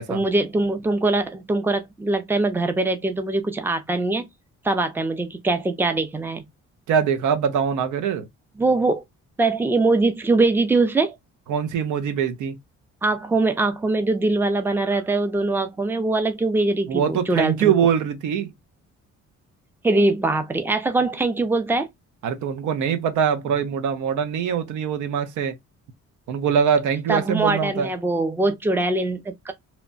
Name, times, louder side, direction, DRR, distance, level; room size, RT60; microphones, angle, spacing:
voice 1, 0.1-4.3 4.6-6.4 8.6-9.0 9.4-11.1 13.0-17.7 19.8-21.9 27.1-29.5, right 2 dB, 5° right, 0.5 m, -22 dB
voice 2, 6.9-8.3 11.5-12.6 16.9-18.5 22.2-25.6 26.3-27.9, right 7 dB, 80° right, 0.6 m, -23 dB
2.9 x 2.1 x 2.4 m
cardioid pair, 90°, 30 cm